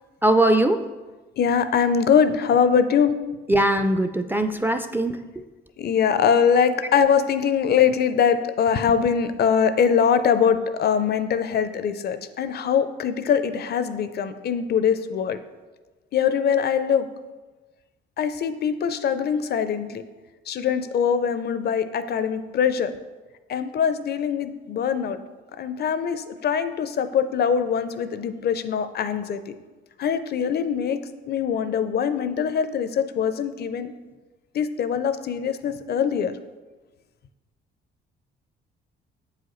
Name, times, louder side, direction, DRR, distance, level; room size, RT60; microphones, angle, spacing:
voice 1, 0.2-0.8 3.5-5.2, right 1 dB, 10° right, 7 dB, 0.3 m, -20 dB
voice 2, 1.4-3.1 5.8-15.4 16.1-17.1 18.2-20.0 20.5-22.9 23.5-25.2 25.6-29.4 30.0-31.0 31.3-33.9 34.5-36.3, left 7 dB, 55° left, 11 dB, 0.5 m, -22 dB
7.6 x 4.8 x 3.0 m, 1.2 s
cardioid pair, 90°, 20 cm